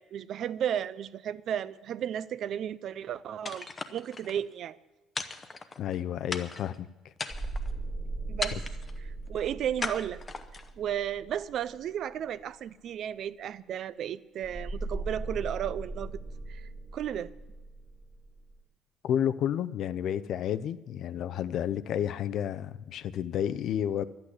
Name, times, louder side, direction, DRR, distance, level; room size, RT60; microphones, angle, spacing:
voice 1, 0.0-4.8 8.3-8.6 9.0-10.2 10.8-16.1 16.5-17.3, right 9 dB, 45° right, 0.5 m, -34 dB
sound 1, 3.5-4.3 5.2-6.0 6.3-6.8 7.2-7.7 8.4-9.0 9.8-10.7, left 4 dB, 20° left, 0.7 m, -37 dB
voice 2, 5.8-6.9 8.5-8.6 19.0-24.0, left 10 dB, 50° left, 0.5 m, -31 dB
sound 2, 7.3-11.7 14.4-18.6, right 2 dB, 10° right, 2.1 m, -38 dB
12.0 x 8.7 x 9.8 m
cardioid pair, 165°, 0 cm